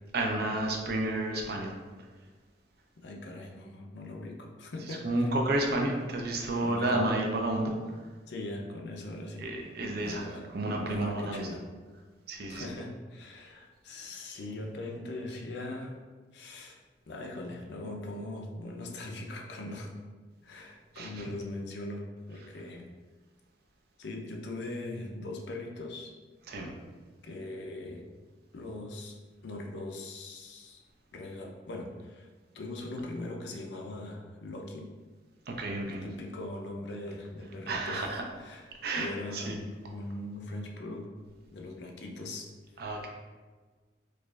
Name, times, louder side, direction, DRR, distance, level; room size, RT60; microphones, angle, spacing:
voice 1, 0.1-1.7 4.9-7.7 9.4-10.2 10.5-11.5 12.3-12.6 20.9-21.2 26.5-26.7 35.5-36.0 37.7-38.2 38.8-39.6 42.8-43.1, right 2 dB, 60° right, 1 dB, 0.5 m, -31 dB
voice 2, 3.0-5.3 6.6-7.0 8.3-9.5 9.9-10.5 10.9-11.6 12.5-16.0 16.3-16.8 17.1-19.9 20.4-22.9 24.0-26.1 27.2-28.1 28.5-29.2 29.4-30.8 31.1-32.3 32.5-34.9 35.9-38.7 39.0-41.1 41.5-42.5 42.8-43.1, left 2 dB, 70° left, 2 dB, 0.5 m, -40 dB
4.6 x 2.4 x 2.3 m, 1.4 s
head